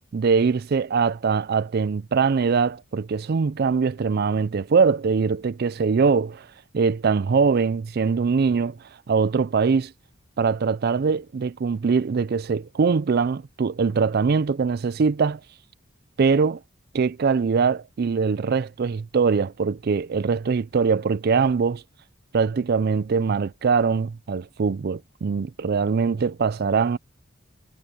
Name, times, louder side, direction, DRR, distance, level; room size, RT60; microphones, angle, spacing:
voice 1, 0.1-6.5 6.7-8.8 9.1-9.9 10.4-15.4 16.2-16.6 16.9-21.8 22.3-27.0, right 5 dB, 50° right, 0.4 m, -22 dB
head